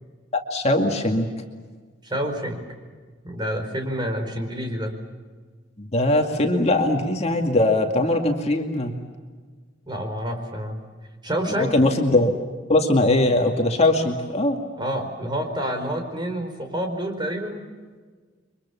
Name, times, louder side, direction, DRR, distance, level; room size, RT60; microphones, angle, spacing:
voice 1, 0.3-1.3 5.8-9.0 11.6-12.3 12.7-14.6, left 2 dB, 35° left, 3 dB, 2.3 m, -20 dB
voice 2, 2.0-2.6 3.2-4.9 9.9-10.8 11.2-11.8 14.8-17.6, equal, 25° right, 4 dB, 4.8 m, -28 dB
30.0 x 24.5 x 7.1 m, 1.5 s
head